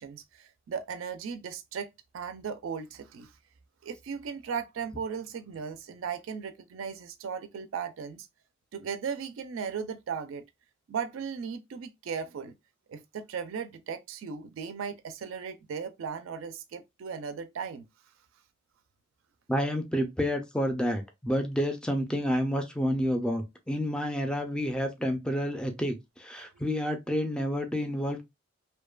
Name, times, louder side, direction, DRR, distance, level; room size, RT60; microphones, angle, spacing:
voice 1, 0.0-1.9 2.1-3.3 3.8-8.3 8.7-10.4 10.9-12.5 12.9-17.9 26.4-26.5, right 6 dB, 75° right, 0.4 m, -37 dB
voice 2, 19.5-28.2, equal, 5° left, 0.3 m, -29 dB
2.7 x 2.1 x 2.2 m
head